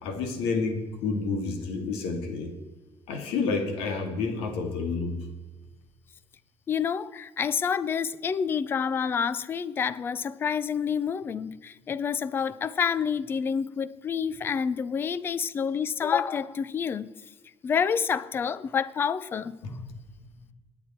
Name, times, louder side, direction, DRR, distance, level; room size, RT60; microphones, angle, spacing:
voice 1, 0.0-2.5 3.1-5.1 19.6-20.0, left 4 dB, 85° left, 2.4 m, -30 dB
voice 2, 6.7-17.1 17.6-19.6, left 7 dB, 25° left, 0.4 m, -28 dB
22.5 x 9.5 x 4.4 m
cardioid pair, 180°, 10 cm